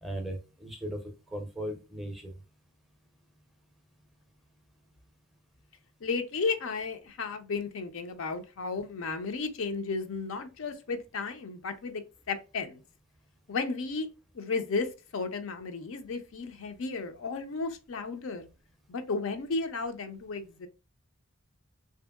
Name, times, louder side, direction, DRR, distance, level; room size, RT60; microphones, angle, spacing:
voice 1, 0.0-1.0 1.3-2.3, right 1 dB, ahead, 0.5 m, -37 dB
voice 2, 6.0-12.0 12.3-12.8 13.5-14.1 14.3-18.5 18.9-20.7, left 4 dB, 65° left, 0.5 m, -33 dB
2.8 x 2.6 x 2.2 m
head